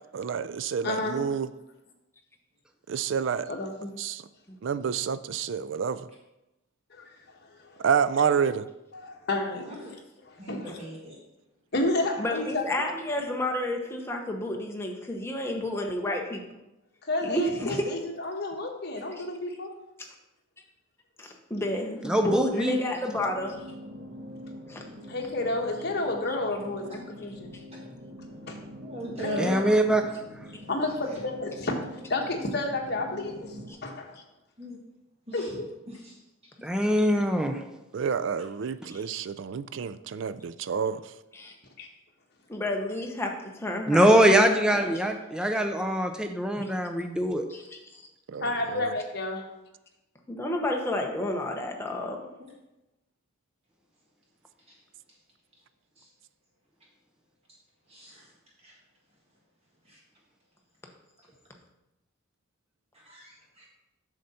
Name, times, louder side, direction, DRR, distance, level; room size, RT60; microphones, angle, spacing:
voice 1, 0.1-1.5 2.9-3.5 4.0-4.2 4.6-6.1 7.8-8.7 37.9-41.1 48.3-48.9, right 7 dB, 60° right, 14 dB, 0.4 m, -29 dB
voice 2, 0.8-1.2 3.5-3.9 6.9-7.0 7.6-7.8 8.9-9.9 10.2-10.7 11.7-12.6 17.0-19.7 22.6-22.7 25.1-27.5 28.5-28.6 29.2-29.6 30.7-31.8 32.1-34.1 35.3-35.7 41.8-41.9 48.4-49.4, left 2 dB, 50° left, 1 dB, 1.3 m, -31 dB
voice 3, 10.4-11.2 28.8-29.6 34.6-34.8 35.3-35.5 35.9-36.1 54.7-54.8 56.0-56.1 57.9-58.3 58.6-58.8 59.9-60.0 62.9-63.6, equal, 30° right, -3 dB, 1.5 m, -38 dB
voice 4, 12.2-16.4 17.2-17.8 19.2-19.3 21.2-23.6 24.7-24.8 27.5-27.6 38.9-39.0 41.3-41.5 42.5-43.3 43.6-44.5 44.7-44.9 46.6-46.7 47.5-48.0 50.3-52.2, left 1 dB, 10° left, 1 dB, 0.9 m, -31 dB
voice 5, 22.0-22.8 29.4-30.0 36.6-37.6 43.9-47.5, right 1 dB, 5° right, 5 dB, 0.6 m, -23 dB
sound 1, 23.1-33.7, left 1 dB, 80° right, 1.4 m, -45 dB
7.6 x 6.5 x 4.2 m, 0.95 s
head